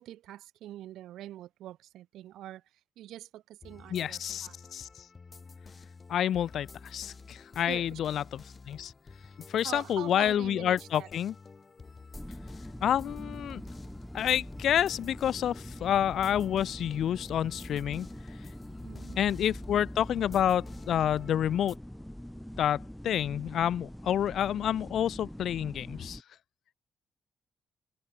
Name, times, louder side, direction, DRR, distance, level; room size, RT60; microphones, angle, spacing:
voice 1, 0.0-2.6 3.0-4.6 7.7-8.0 9.6-11.1 18.8-19.2, right 13 dB, 90° right, 2.0 m, -44 dB
sound 1, 3.6-21.8, left 4 dB, 30° left, 2.8 m, -51 dB
voice 2, 3.9-4.9 6.1-8.9 9.5-11.3 12.8-13.6 14.1-18.1 19.2-21.8 22.6-26.2, left 10 dB, 65° left, 0.8 m, -29 dB
sound 2, 12.1-26.2, equal, 5° left, 1.1 m, -43 dB
cardioid pair, 120°, 0 cm